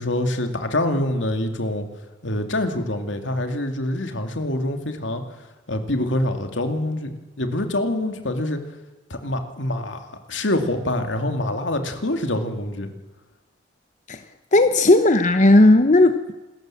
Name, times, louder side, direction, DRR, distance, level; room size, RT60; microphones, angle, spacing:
voice 1, 0.0-1.9 2.2-5.2 5.7-8.6 9.1-12.9, left 1 dB, 80° left, 6 dB, 2.5 m, -25 dB
voice 2, 14.5-16.3, left 2 dB, 40° left, 9 dB, 0.9 m, -15 dB
27.0 x 13.5 x 7.7 m, 1.2 s
head